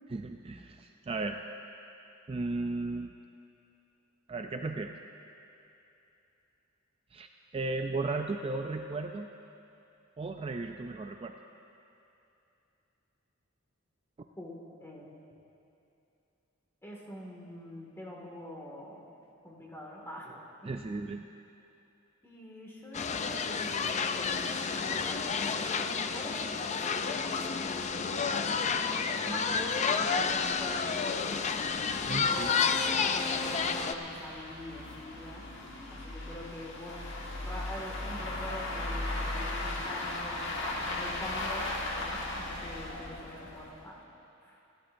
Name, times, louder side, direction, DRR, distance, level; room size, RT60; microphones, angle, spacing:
voice 1, 0.1-1.4 2.3-3.1 4.3-4.9 7.1-7.3 7.5-9.3 10.2-11.3 20.7-21.2 32.1-32.5, right 3 dB, 25° right, 5 dB, 0.4 m, -35 dB
voice 2, 14.8-15.1 16.8-19.0 19.4-20.5 22.2-24.4 24.7-28.4 29.2-31.3 32.2-32.6 32.9-35.4 35.9-37.0 37.4-44.0 44.4-44.6, equal, 15° left, -3 dB, 2.0 m, -44 dB
sound 1, 22.9-33.9, left 5 dB, 35° left, 0.4 m, -30 dB
sound 2, 27.5-27.6 27.8-27.9 28.4-28.5 28.8-28.9 29.5-43.9, left 2 dB, 60° left, 1.5 m, -38 dB
28.5 x 11.5 x 2.6 m, 2.8 s
head